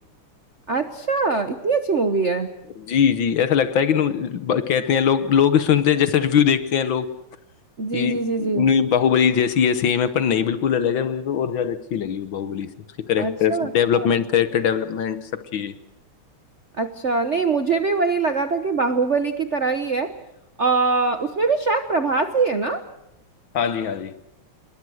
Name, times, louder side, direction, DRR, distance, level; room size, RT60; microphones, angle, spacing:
voice 1, 0.7-2.5 7.8-8.7 13.2-14.1 16.8-20.1 20.6-22.8, right 4 dB, 40° right, 8 dB, 1.1 m, -22 dB
voice 2, 2.9-7.1 7.9-12.7 13.1-15.7 23.5-24.1, left 8 dB, 65° left, 12 dB, 1.7 m, -21 dB
27.5 x 21.5 x 6.3 m, 0.86 s
omnidirectional pair, 2.4 m